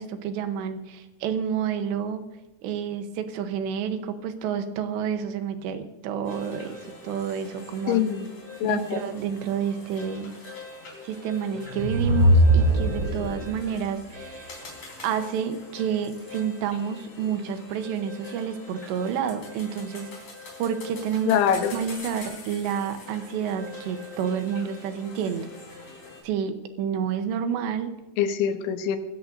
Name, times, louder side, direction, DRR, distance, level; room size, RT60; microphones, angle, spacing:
voice 1, 0.0-2.2 2.6-8.0 8.6-10.3 11.0-14.7 15.0-20.1 20.6-21.3 21.7-25.5 26.2-28.0, right 8 dB, 75° right, 8 dB, 3.0 m, -29 dB
sound 1, 6.2-26.2, left 3 dB, 40° left, 4.6 m, -43 dB
voice 2, 7.9-8.3 8.6-9.0 21.3-21.8 28.2-29.0, left 9 dB, 80° left, 7 dB, 3.3 m, -23 dB
sound 2, 11.5-13.6, right 1 dB, 15° right, 5.3 m, -20 dB
24.5 x 13.0 x 2.6 m, 1.1 s
omnidirectional pair, 5.4 m